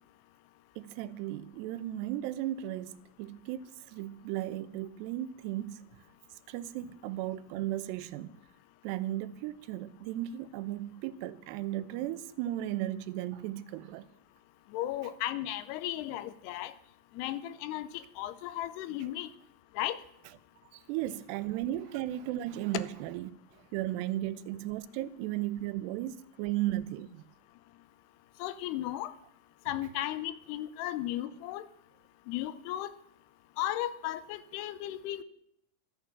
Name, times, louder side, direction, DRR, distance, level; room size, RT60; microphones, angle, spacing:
voice 1, 0.8-5.9 6.5-8.4 8.8-14.0 20.9-23.2 23.7-27.2, right 14 dB, 85° right, 2.7 m, -35 dB
voice 2, 14.7-16.7 17.2-19.3 19.8-20.0 28.4-29.1 29.7-31.7 32.3-32.9 33.6-35.2, left 13 dB, 80° left, 2.6 m, -35 dB
12.5 x 9.0 x 7.2 m
omnidirectional pair, 4.8 m